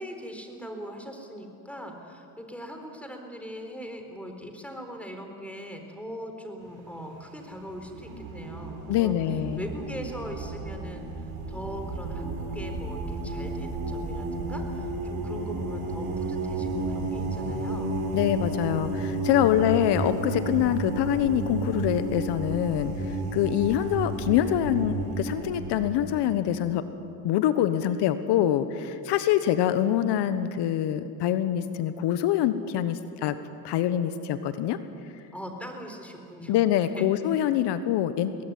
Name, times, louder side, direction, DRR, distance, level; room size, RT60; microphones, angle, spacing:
voice 1, 0.0-9.2 9.6-11.1 11.5-18.0 35.3-36.6 36.9-37.1, equal, 5° left, 4 dB, 3.9 m, -40 dB
sound 1, 6.6-7.0 7.5-26.0, right 2 dB, 50° right, 7.1 m, -32 dB
voice 2, 8.9-9.6 18.1-26.8 27.2-33.4 33.6-34.8 36.5-38.4, left 11 dB, 60° left, 11 dB, 1.3 m, -25 dB
22.5 x 18.5 x 9.6 m, 2.6 s
supercardioid pair, 105°, 47 cm